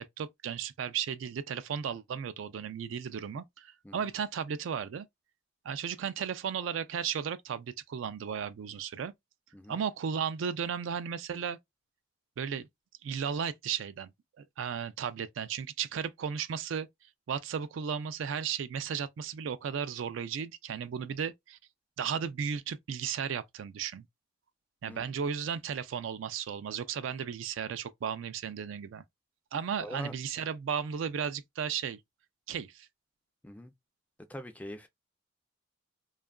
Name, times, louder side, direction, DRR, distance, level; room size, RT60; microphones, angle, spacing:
voice 1, 0.0-5.1 5.6-9.1 9.7-11.6 12.4-12.7 13.0-14.1 14.4-16.9 17.3-21.6 22.0-24.0 24.8-29.0 29.5-32.0 32.5-32.9, right 7 dB, 75° right, 0.3 m, -35 dB
voice 2, 29.8-30.1 33.4-33.7 34.3-34.9, equal, 10° left, 0.3 m, -43 dB
2.8 x 2.3 x 2.2 m
head